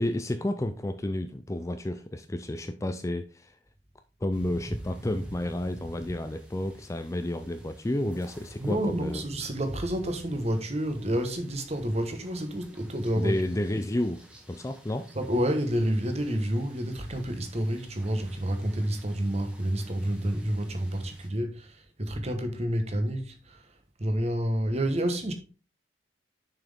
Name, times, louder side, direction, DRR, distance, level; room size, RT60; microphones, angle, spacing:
voice 1, 0.0-3.6 4.2-9.2 13.2-14.2 14.5-15.1, left 1 dB, 15° left, 0.4 m, -31 dB
sound 1, 4.3-21.3, right 1 dB, 5° right, 1.4 m, -48 dB
voice 2, 8.6-13.4 15.1-23.7 24.0-25.3, equal, 30° right, 1.2 m, -29 dB
6.9 x 6.0 x 3.5 m
head